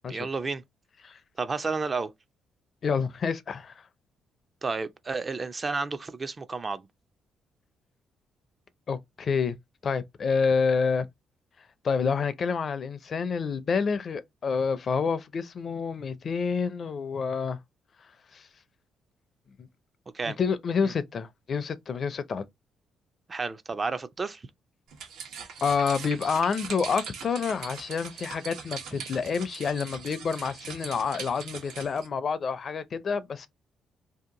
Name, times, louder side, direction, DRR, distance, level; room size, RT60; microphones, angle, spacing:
voice 1, 0.1-0.6 1.4-2.1 4.6-6.8 20.1-20.4 20.8-20.9 23.3-24.4, right 4 dB, 30° right, 0.4 m, -31 dB
voice 2, 2.8-3.7 8.9-9.6 9.8-11.1 11.8-17.6 18.3-18.5 20.2-22.4 25.6-33.5, left 5 dB, 50° left, 0.5 m, -28 dB
sound 1, 24.9-32.1, right 6 dB, 85° right, 1.0 m, -41 dB
2.8 x 2.5 x 3.6 m
cardioid pair, 90°, 0 cm